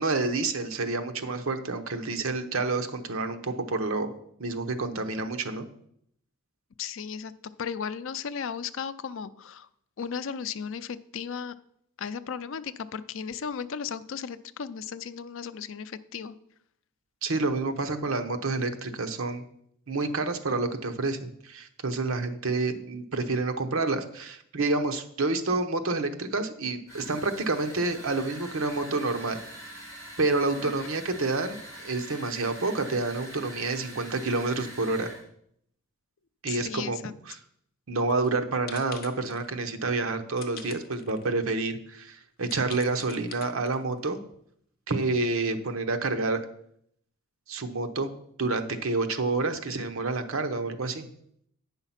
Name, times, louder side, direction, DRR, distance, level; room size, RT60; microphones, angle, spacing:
voice 1, 0.0-4.1 4.4-5.7 17.2-19.4 19.9-29.4 30.2-35.1 36.4-37.0 37.3-37.4 37.9-44.2 44.9-46.4 47.5-48.1 48.4-51.1, right 3 dB, 70° right, 7 dB, 0.9 m, -28 dB
voice 2, 6.8-7.3 7.6-9.7 10.0-11.6 12.0-16.4 30.6-30.9 36.5-37.1, left 6 dB, 60° left, 13 dB, 0.4 m, -35 dB
sound 1, 26.9-35.2, right 1 dB, 15° right, 3.2 m, -44 dB
sound 2, 38.1-38.3 38.7-39.5 40.4-41.3 41.7-41.8 42.4-44.0, left 6 dB, 45° left, 0.8 m, -45 dB
8.9 x 5.7 x 5.7 m, 0.70 s
head